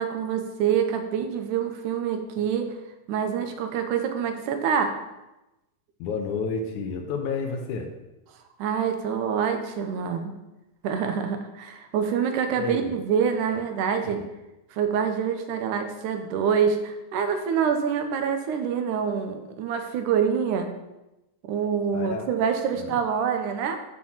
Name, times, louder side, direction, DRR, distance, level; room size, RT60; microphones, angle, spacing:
voice 1, 0.0-2.7 3.1-5.0 8.6-10.3 10.8-14.2 14.7-20.7 21.4-23.8, right 7 dB, 90° right, 6 dB, 2.4 m, -26 dB
voice 2, 6.0-7.9 12.6-13.0 14.0-14.2 21.9-22.3 22.7-23.0, left 5 dB, 75° left, 3 dB, 2.3 m, -31 dB
9.7 x 4.5 x 7.1 m, 0.98 s
omnidirectional pair, 3.5 m